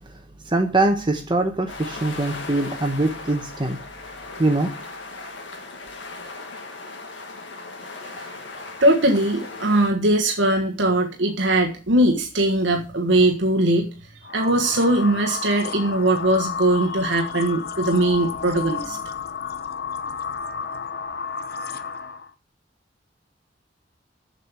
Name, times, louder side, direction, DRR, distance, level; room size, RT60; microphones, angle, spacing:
voice 1, 0.5-3.8 4.4-4.7, right 2 dB, 25° right, 4 dB, 1.1 m, -22 dB
sound 1, 1.7-9.9, left 3 dB, 75° left, 2.1 m, -37 dB
voice 2, 8.8-13.9 14.3-19.0, right 1 dB, 85° right, 2 dB, 1.4 m, -20 dB
sound 2, 14.2-22.3, left 6 dB, 55° left, 0.8 m, -32 dB
7.4 x 6.6 x 8.1 m, 0.36 s
head